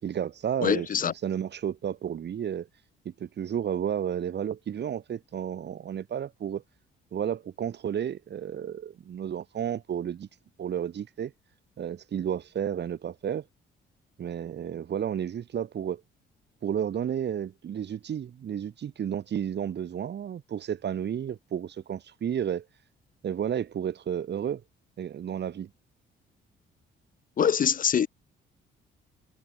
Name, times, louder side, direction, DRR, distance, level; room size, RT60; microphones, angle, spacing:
voice 1, 0.0-2.7 3.1-6.6 7.1-10.3 10.6-11.3 11.8-13.4 14.2-16.0 16.6-22.7 23.2-24.6 25.0-25.7, right 9 dB, 60° right, 5.2 m, -32 dB
voice 2, 0.6-1.1 27.4-28.1, left 8 dB, 45° left, 0.7 m, -24 dB
cardioid pair, 90°, 20 cm